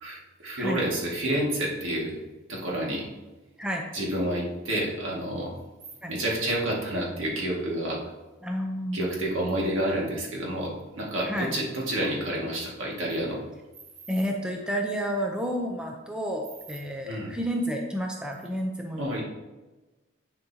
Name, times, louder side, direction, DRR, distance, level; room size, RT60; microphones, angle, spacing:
voice 1, 0.0-2.1 2.5-3.1 3.9-5.5 6.1-8.0 8.9-13.4 17.0-17.3 19.0-19.2, right 1 dB, 85° right, -3 dB, 2.0 m, -29 dB
voice 2, 8.4-9.0 11.2-11.6 14.1-19.2, equal, 5° right, 1 dB, 0.6 m, -30 dB
9.5 x 5.3 x 2.8 m, 1.1 s
head